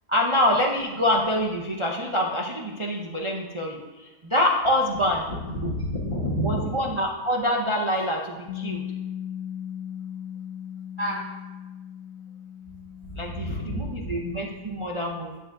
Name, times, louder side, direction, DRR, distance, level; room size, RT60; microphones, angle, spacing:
voice 1, 0.1-5.3 6.4-8.8 13.2-15.4, left 1 dB, 40° right, -1 dB, 0.4 m, -26 dB
voice 2, 5.3-6.9 11.0-11.4 13.1-14.1, equal, 30° left, -9 dB, 2.1 m, -29 dB
Bass guitar, 8.5-14.7, left 9 dB, 75° left, 1.1 m, -38 dB
10.5 x 8.7 x 2.6 m, 1.2 s
omnidirectional pair, 1.7 m